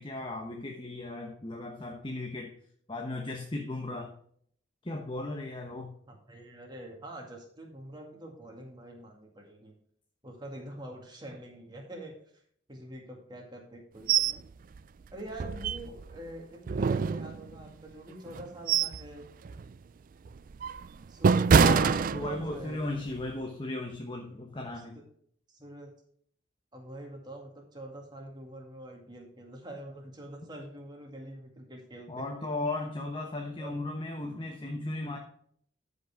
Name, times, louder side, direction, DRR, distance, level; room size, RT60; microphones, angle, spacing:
voice 1, 0.0-2.5 2.9-4.1 4.8-5.9 21.5-25.0 32.1-35.2, left 2 dB, 25° left, 2 dB, 1.0 m, -36 dB
voice 2, 6.1-9.7 10.2-12.1 12.7-14.5 15.1-19.3 21.1-21.6 22.2-22.8 25.5-25.9 26.7-32.3 33.6-33.8, right 1 dB, 25° right, 1 dB, 2.1 m, -45 dB
sound 1, 14.1-14.4 14.8-14.9 15.3-16.2 16.7-17.7 18.3-19.1 19.5-19.7 20.3-22.7 23.1-23.3, right 6 dB, 45° right, 0.3 m, -25 dB
13.0 x 5.4 x 3.6 m, 0.63 s
head